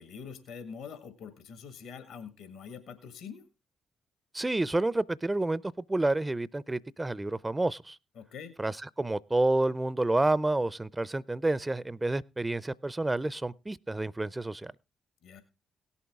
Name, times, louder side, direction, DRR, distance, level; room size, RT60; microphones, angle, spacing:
voice 1, 0.0-3.4 8.1-8.5 15.2-15.4, left 6 dB, 70° left, 1.7 m, -44 dB
voice 2, 4.3-5.6 5.9-8.0 8.6-14.7, right 2 dB, 20° right, 0.5 m, -29 dB
17.5 x 7.1 x 3.6 m
hypercardioid pair, 45°, 0 cm